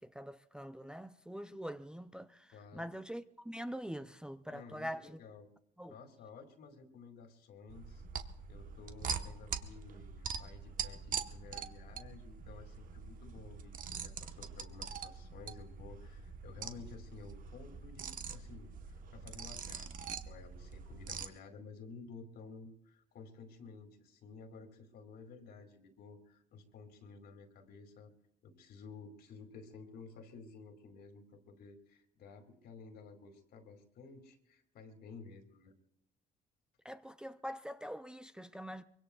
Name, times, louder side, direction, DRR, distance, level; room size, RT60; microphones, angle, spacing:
voice 1, 0.0-5.2 5.8-5.9 36.8-38.8, equal, 5° right, 0.5 m, -44 dB
voice 2, 2.5-2.9 4.5-5.5 5.9-8.0 8.5-28.1 28.4-35.7, left 4 dB, 70° left, 2.5 m, -53 dB
sound 1, 7.7-21.3, right 6 dB, 55° right, 1.2 m, -43 dB
24.0 x 23.0 x 2.4 m
cardioid pair, 110°, 17 cm